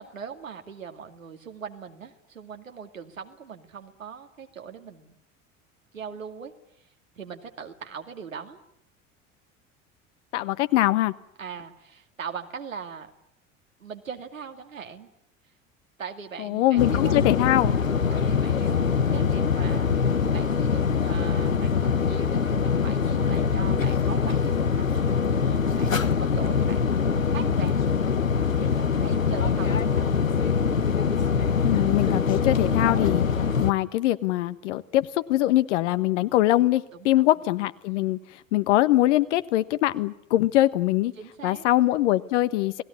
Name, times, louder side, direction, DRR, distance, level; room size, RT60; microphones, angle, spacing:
voice 1, 0.0-5.1 5.9-6.5 6.8-6.9 7.2-8.6 11.4-13.1 13.8-15.1 16.0-17.2 18.1-27.0 27.3-27.8 28.6-30.0 36.9-37.3 37.8-38.1 41.2-41.6, right 6 dB, 85° right, 4 dB, 2.4 m, -40 dB
voice 2, 10.3-11.1 16.4-17.7 31.6-33.2 33.6-41.1 41.4-42.8, left 15 dB, 65° left, 13 dB, 1.3 m, -23 dB
sound 1, 16.8-33.7, left 6 dB, 90° left, 1.2 m, -23 dB
29.5 x 20.0 x 9.8 m, 0.78 s
figure-of-eight pair, 70°, 39 cm